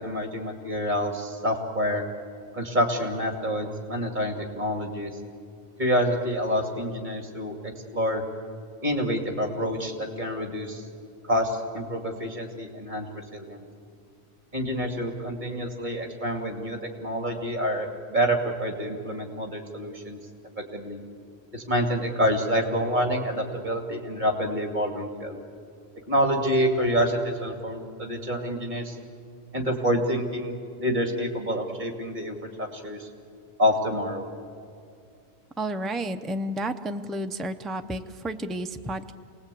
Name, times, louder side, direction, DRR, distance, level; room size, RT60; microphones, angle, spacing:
voice 1, 0.0-2.0 2.5-5.1 5.8-8.2 8.8-10.9 11.2-13.1 13.3-13.6 14.5-20.2 20.7-21.0 21.5-25.4 26.1-29.0 29.5-33.1 33.6-34.3, equal, 35° right, 3 dB, 2.6 m, -27 dB
voice 2, 35.6-39.1, right 1 dB, ahead, 6 dB, 0.5 m, -31 dB
28.0 x 19.5 x 8.5 m, 2.3 s
omnidirectional pair, 1.4 m